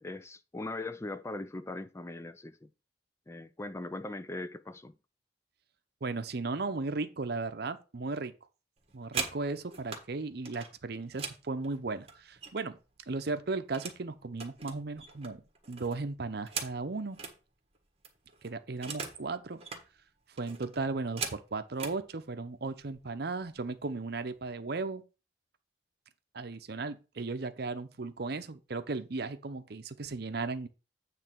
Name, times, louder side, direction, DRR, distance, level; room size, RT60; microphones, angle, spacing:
voice 1, 0.0-2.7 3.3-4.9, left 2 dB, 15° left, 0.4 m, -40 dB
voice 2, 6.0-8.3 8.9-12.8 13.1-15.4 15.7-17.2 18.4-19.6 20.4-25.0 26.3-30.7, right 3 dB, 65° right, 0.7 m, -36 dB
sound 1, 8.8-10.0 10.4-12.8 13.1-14.0 14.3-17.4 17.7-17.8 18.0-19.2 19.5-19.8 20.4-22.0 22.8-23.0 23.3-23.7 24.0-24.5, right 5 dB, 35° right, 1.5 m, -41 dB
8.9 x 3.3 x 6.0 m
head